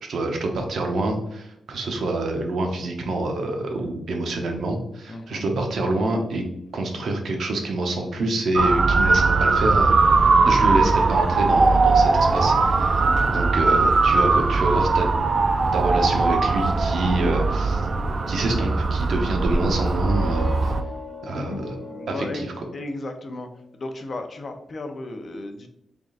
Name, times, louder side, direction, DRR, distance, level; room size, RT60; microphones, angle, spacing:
voice 1, 0.0-6.4 6.7-9.9 10.4-15.1 15.7-17.9 18.3-20.7 21.2-21.7 22.1-22.5, right 2 dB, 75° right, 3 dB, 0.8 m, -26 dB
voice 2, 5.1-5.4 13.1-13.4 21.3-21.6 21.9-22.4 22.7-23.5 23.7-25.7, left 2 dB, 45° left, 6 dB, 0.6 m, -35 dB
Motor vehicle (road) / Siren, 8.6-20.8, right 3 dB, 45° right, 0.4 m, -20 dB
sound 1, 19.7-23.3, left 3 dB, 25° right, 0.9 m, -38 dB
3.8 x 3.5 x 2.4 m, 0.80 s
cardioid pair, 90°, 0 cm